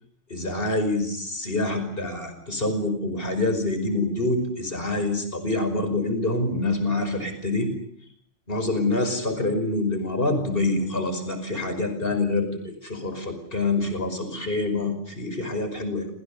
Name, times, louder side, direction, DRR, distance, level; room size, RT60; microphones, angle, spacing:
voice 1, 0.3-7.7 8.5-16.1, left 2 dB, 50° left, 8 dB, 5.7 m, -26 dB
30.0 x 26.5 x 6.8 m, 0.65 s
omnidirectional pair, 1.2 m